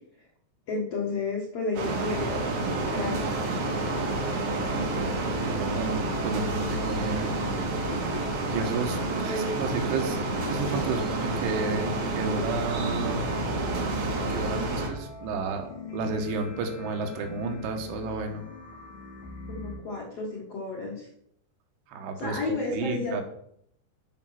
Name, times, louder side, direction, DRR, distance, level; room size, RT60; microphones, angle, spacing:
voice 1, 0.7-2.5 2.9-3.3 9.3-9.6 19.5-21.1 22.2-23.2, left 3 dB, 80° left, -3 dB, 1.4 m, -32 dB
sound 1, 1.7-14.9, right 2 dB, 55° right, 2.4 m, -29 dB
voice 2, 4.6-7.3 8.5-10.2 10.5-13.2 14.3-18.4 21.9-22.4 22.7-23.2, right 4 dB, 80° right, 4 dB, 3.7 m, -32 dB
sound 2, 13.1-19.8, left 3 dB, 55° left, 4.3 m, -42 dB
12.0 x 5.1 x 5.8 m, 0.70 s
omnidirectional pair, 5.5 m